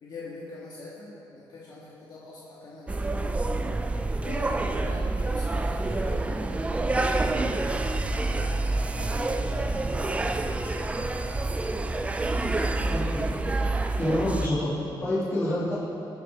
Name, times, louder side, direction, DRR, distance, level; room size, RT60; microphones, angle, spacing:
voice 1, 0.0-3.4 4.2-7.2 8.2-11.4, left 2 dB, 55° left, -6 dB, 1.8 m, -43 dB
sound 1, 2.9-14.5, right 2 dB, 15° right, 0.4 m, -27 dB
voice 2, 12.8-13.3 14.0-15.7, left 1 dB, 25° left, -11 dB, 2.5 m, -28 dB
20.0 x 6.7 x 4.8 m, 2.6 s
wide cardioid pair, 160°, 9 cm